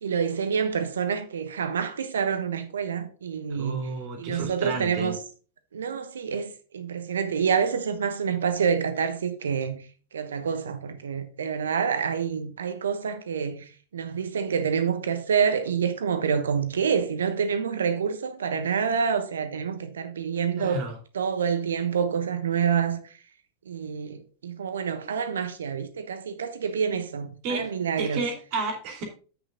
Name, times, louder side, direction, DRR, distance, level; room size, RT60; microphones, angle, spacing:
voice 1, 0.0-3.8 4.2-5.2 5.7-9.8 10.1-20.8 21.1-23.0 23.7-28.2, right 6 dB, 65° right, 1.1 m, -27 dB
voice 2, 3.5-5.1 20.6-21.0 27.4-27.7 28.0-29.0, right 3 dB, 45° right, 2.7 m, -32 dB
8.0 x 6.5 x 3.8 m
figure-of-eight pair, 90°, 0 cm